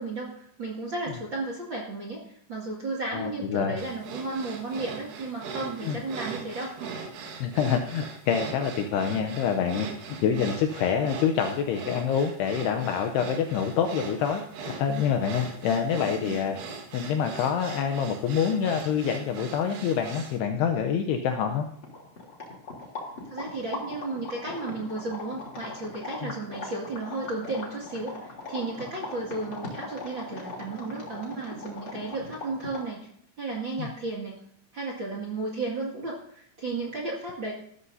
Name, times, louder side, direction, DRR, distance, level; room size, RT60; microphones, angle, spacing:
voice 1, 0.0-7.0 15.8-16.4 23.3-33.1 33.4-34.3 34.7-37.5, right 3 dB, 40° right, -3 dB, 1.9 m, -34 dB
voice 2, 3.1-3.8 5.8-6.0 7.4-9.9 10.2-16.6 16.9-21.7 26.2-26.3 33.8-33.9, left 7 dB, 80° left, 6 dB, 2.5 m, -26 dB
sound 1, 3.8-20.4, right 5 dB, 65° right, 3.6 m, -40 dB
sound 2, 21.3-33.0, left 3 dB, 30° left, 3.0 m, -40 dB
15.5 x 13.5 x 2.7 m, 0.67 s
omnidirectional pair, 5.4 m